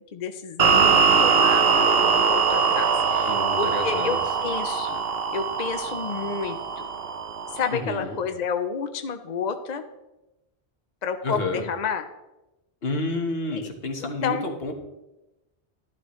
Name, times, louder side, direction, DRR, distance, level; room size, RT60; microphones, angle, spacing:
voice 1, 0.1-5.0 5.3-6.9 7.5-9.8 11.0-12.0 13.5-13.7 14.0-14.5, left 6 dB, 50° left, 8 dB, 0.6 m, -30 dB
sound 1, 0.6-7.8, right 5 dB, 65° right, 1.0 m, -22 dB
voice 2, 3.3-4.2 7.7-8.2 11.2-11.6 12.8-14.7, left 2 dB, 65° left, 3 dB, 1.5 m, -29 dB
11.5 x 11.5 x 3.1 m, 0.99 s
omnidirectional pair, 1.1 m